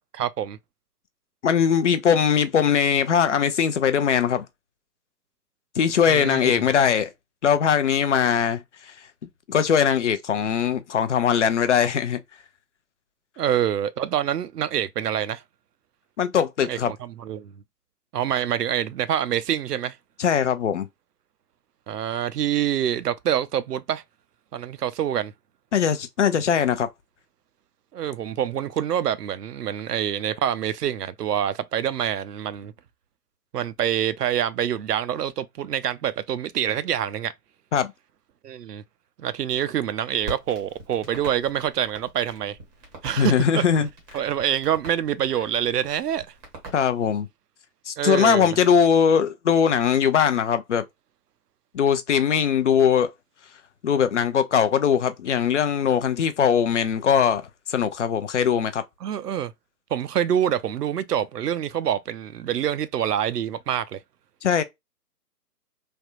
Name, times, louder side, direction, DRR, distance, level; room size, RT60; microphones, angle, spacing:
voice 1, 0.1-0.6 6.0-6.6 13.4-15.4 16.6-17.5 18.1-20.0 21.9-24.0 24.5-25.3 27.9-32.7 33.5-37.3 38.4-38.8 39.2-42.6 43.0-43.6 44.1-46.3 48.0-48.6 59.0-59.5 59.9-64.0, right 10 dB, 75° right, 0.5 m, -26 dB
voice 2, 1.4-4.4 5.8-7.1 7.4-8.6 9.5-12.2 16.2-16.9 20.2-20.9 25.7-26.9 37.7-37.9 43.2-43.9 46.7-47.3 47.9-50.8 51.7-53.1 53.8-57.4 57.7-58.8 64.4-64.6, left 7 dB, 50° left, 0.5 m, -21 dB
Crackle, 40.2-47.2, right 2 dB, 15° right, 0.7 m, -43 dB
3.4 x 2.2 x 2.4 m
figure-of-eight pair, 125°, 47 cm